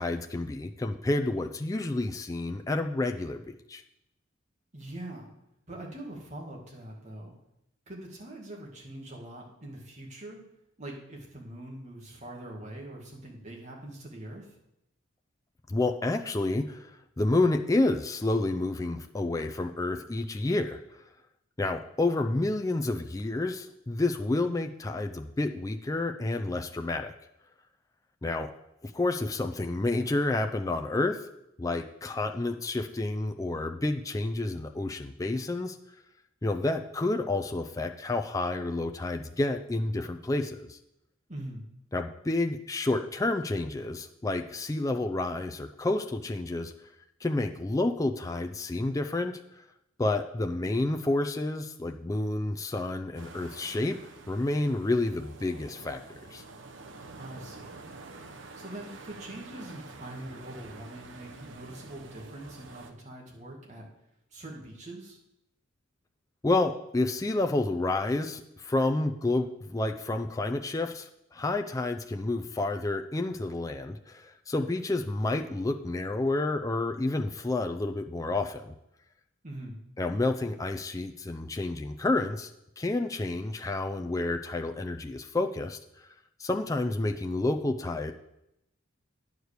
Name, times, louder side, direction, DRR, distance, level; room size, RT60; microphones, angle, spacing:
voice 1, 0.0-3.8 15.7-16.9 17.2-20.8 21.6-27.1 28.2-28.5 28.8-31.2 31.6-35.8 36.4-40.8 41.9-46.7 47.2-49.6 50.0-54.0 54.3-56.0 56.3-56.4 66.4-78.7 80.0-82.5 82.8-86.1 86.4-88.1, left 2 dB, 15° left, 5 dB, 0.4 m, -29 dB
voice 2, 4.7-5.3 5.7-7.3 7.9-10.4 10.8-14.5 41.3-41.6 57.2-57.8 58.4-63.9 64.3-65.2 79.4-79.8, right 1 dB, 35° right, -1 dB, 1.9 m, -43 dB
sound 1, 53.1-62.9, right 3 dB, 60° right, 0.8 m, -48 dB
9.6 x 4.8 x 6.6 m, 0.83 s
head